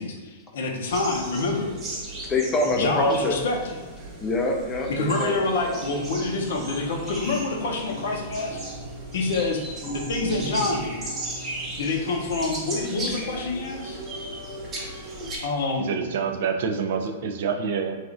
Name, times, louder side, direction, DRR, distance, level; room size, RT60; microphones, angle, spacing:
voice 1, 0.0-1.7 2.7-3.7 4.9-8.7 9.1-9.7 9.9-11.0 11.8-14.0 15.4-15.9, left 3 dB, 70° left, 1 dB, 0.6 m, -27 dB
sound 1, 0.9-15.4, right 1 dB, 20° right, 0.7 m, -37 dB
voice 2, 2.2-3.4 4.2-6.0, left 2 dB, 20° left, 1 dB, 0.4 m, -25 dB
sound 2, 2.3-4.8 5.1-5.4 5.8-14.4 14.8-15.8, right 3 dB, ahead, 1.1 m, -42 dB
voice 3, 15.8-18.0, right 6 dB, 60° right, 4 dB, 0.3 m, -27 dB
3.1 x 2.4 x 2.5 m, 1.3 s
hypercardioid pair, 150°, 0 cm